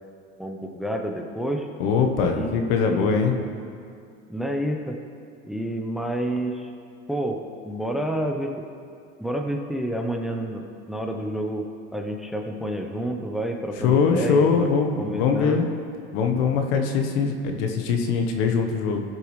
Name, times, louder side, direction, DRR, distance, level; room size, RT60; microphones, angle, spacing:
voice 1, 0.4-1.7 2.3-3.2 4.3-5.0 5.4-6.7 7.1-7.4 7.6-8.7 9.2-11.7 11.9-14.7 15.0-15.6, right 1 dB, ahead, 3 dB, 0.8 m, -29 dB
voice 2, 1.8-3.4 13.8-15.6 16.1-19.0, left 5 dB, 75° left, 4 dB, 1.2 m, -22 dB
16.5 x 6.8 x 3.2 m, 2.3 s
supercardioid pair, 110°, 29 cm